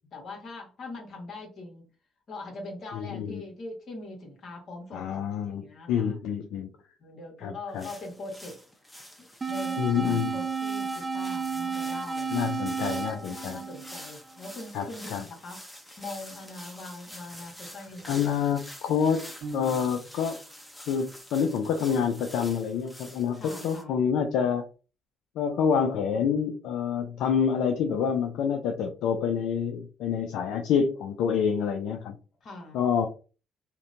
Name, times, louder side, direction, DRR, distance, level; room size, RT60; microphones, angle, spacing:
voice 1, 0.1-1.9 2.3-6.2 7.0-8.6 9.2-12.4 12.8-15.6 16.0-18.3 23.3-24.0 32.4-32.8, left 2 dB, 55° left, 1 dB, 1.2 m, -42 dB
voice 2, 2.9-3.4 4.9-6.7 7.4-7.9 9.8-10.4 12.3-13.6 14.7-15.3 18.1-19.3 19.5-20.4 20.9-24.6 25.4-32.2 32.7-33.1, left 7 dB, 75° left, 4 dB, 0.3 m, -27 dB
sound 1, 7.8-23.8, equal, 5° left, 0.7 m, -47 dB
sound 2, 9.4-14.4, right 5 dB, 25° right, 0.4 m, -32 dB
Piano, 19.4-20.4, right 2 dB, 70° right, 0.7 m, -41 dB
2.7 x 2.1 x 2.5 m, 0.35 s
supercardioid pair, 65°, 0 cm